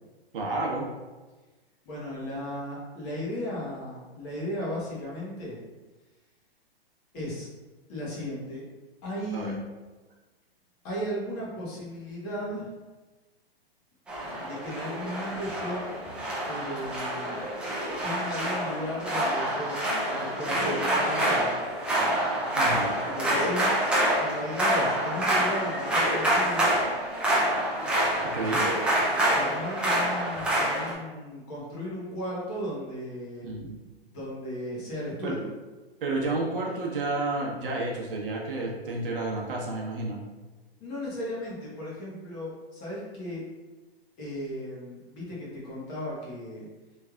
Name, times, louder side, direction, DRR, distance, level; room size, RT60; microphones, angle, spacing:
voice 1, 0.3-0.9 9.3-9.5 22.5-22.9 28.3-28.7 33.4-33.8 35.2-35.4 36.0-40.2, right 2 dB, 60° right, -2 dB, 1.0 m, -30 dB
voice 2, 1.8-5.6 7.1-7.5 7.9-8.6 9.0-9.6 10.8-12.7 14.4-15.8 16.5-22.3 23.1-23.7 24.2-26.7 29.3-33.5 34.1-35.5 40.8-43.4 44.2-46.7, equal, 35° left, -6 dB, 1.4 m, -36 dB
sound 1, 14.1-30.9, right 1 dB, 5° right, 0.4 m, -27 dB
3.3 x 3.3 x 2.4 m, 1.2 s
hypercardioid pair, 140°, 31 cm